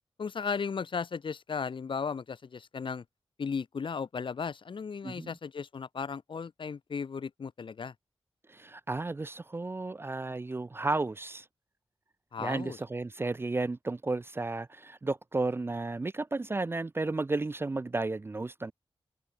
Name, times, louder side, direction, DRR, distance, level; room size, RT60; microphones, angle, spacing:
voice 1, 0.2-3.0 3.4-7.9 12.3-12.8, left 5 dB, 65° left, 1.7 m, -35 dB
voice 2, 8.5-11.4 12.4-18.7, right 3 dB, 25° right, 0.4 m, -33 dB
wide cardioid pair, 80°, 9 cm